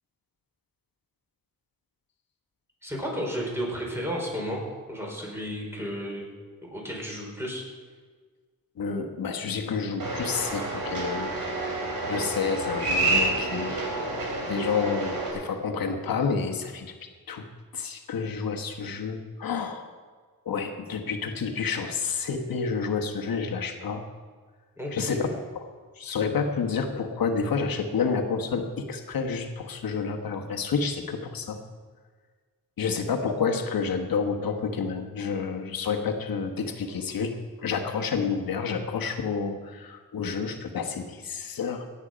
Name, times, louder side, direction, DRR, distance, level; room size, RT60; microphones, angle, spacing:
voice 1, 2.8-4.6 4.9-6.3 6.6-7.6 24.8-25.2, equal, 5° right, -2 dB, 4.5 m, -33 dB
voice 2, 8.8-11.3 11.7-13.8 14.5-16.9 17.3-17.5 17.7-19.8 20.4-24.0 24.9-25.3 25.5-25.6 26.0-31.6 32.8-37.4 37.6-41.8, left 5 dB, 80° left, 4 dB, 1.3 m, -29 dB
sound 1, 10.0-15.3, right 2 dB, 75° right, 3.1 m, -28 dB
17.0 x 8.1 x 5.1 m, 1.5 s
cardioid pair, 85°, 35 cm